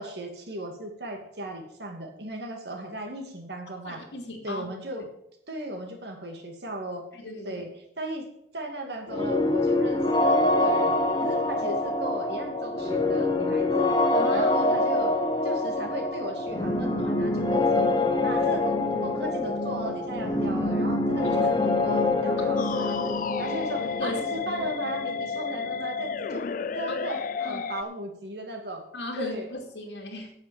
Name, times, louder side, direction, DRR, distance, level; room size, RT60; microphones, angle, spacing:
voice 1, 0.0-4.0 4.4-5.1 5.5-7.1 7.4-7.7 8.0-8.2 8.5-13.9 14.3-15.2 15.4-17.9 18.2-23.1 23.4-26.4 26.7-28.9 29.2-29.5, right 1 dB, 65° right, 3 dB, 2.5 m, -36 dB
voice 2, 3.8-4.6 7.1-7.6 14.1-14.5 22.6-22.9 24.0-24.5 27.4-27.7 28.9-30.3, left 2 dB, 75° left, 2 dB, 2.6 m, -37 dB
sound 1, 9.1-26.7, left 2 dB, 25° left, 1.5 m, -25 dB
sound 2, 22.6-27.8, left 6 dB, 50° left, 0.4 m, -32 dB
9.1 x 8.1 x 7.4 m, 0.77 s
head